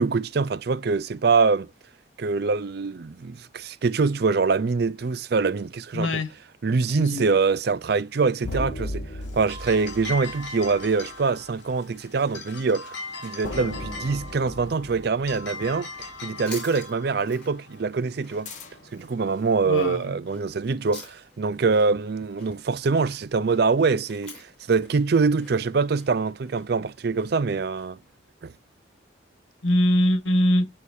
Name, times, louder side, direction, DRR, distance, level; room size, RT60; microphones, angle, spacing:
voice 1, 0.0-1.7 2.2-6.2 6.6-9.1 9.3-12.9 13.2-18.5 18.9-28.0 28.4-28.5, right 4 dB, 55° right, 0.5 m, -24 dB
voice 2, 5.9-6.3 6.9-7.3 19.7-20.2 29.6-30.6, left 1 dB, 85° left, 1.7 m, -22 dB
sound 1, 8.4-11.2 13.4-16.1 18.5-19.1, left 1 dB, 40° left, 2.6 m, -37 dB
sound 2, 9.2-19.6, left 3 dB, 65° left, 4.0 m, -40 dB
sound 3, 15.9-28.1, left 2 dB, 5° left, 4.2 m, -48 dB
10.0 x 4.7 x 2.6 m
head